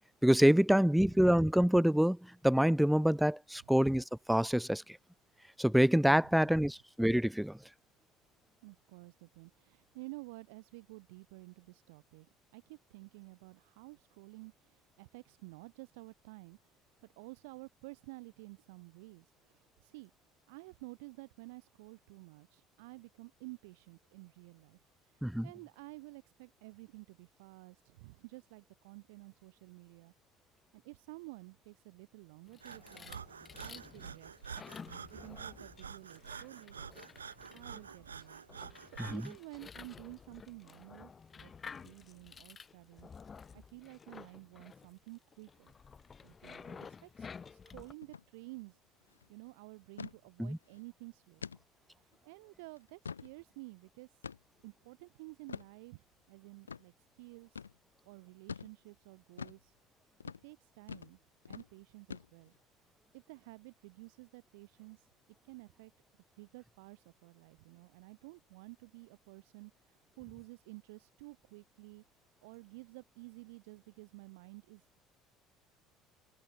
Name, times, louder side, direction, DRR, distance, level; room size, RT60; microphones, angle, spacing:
voice 1, 0.2-2.2 2.4-4.8 5.6-7.6 25.2-25.5 39.1-39.2 50.5-50.6, equal, ahead, 0.4 m, -26 dB
voice 2, 8.6-20.1 20.5-30.1 30.7-33.2 33.6-34.7 35.1-36.8 37.5-38.4 38.9-45.7 46.2-51.5 51.9-54.2 54.6-57.6 58.0-59.7 60.4-61.2 61.5-62.5 63.1-65.1 65.4-65.9 66.4-72.0 72.4-75.0, right 25 dB, 70° right, 3.8 m, -52 dB
sound 1, 32.5-47.9, left 6 dB, 30° left, 4.2 m, -52 dB
Breathing, 32.6-39.4, right 6 dB, 90° right, 1.9 m, -48 dB
sound 2, 48.0-48.3 48.6-48.7 49.0-49.3 50.0-50.2 50.7-50.8 51.4-51.6 52.1-52.2 52.8-53.3 54.2-54.6 55.5-55.7 56.7-56.8 57.5-57.7 58.5-58.7 59.4-59.6 60.2-60.4 60.9-61.1 61.4-61.7 62.1-62.6, left 6 dB, 90° left, 0.8 m, -45 dB
hypercardioid pair, 65°, 0 cm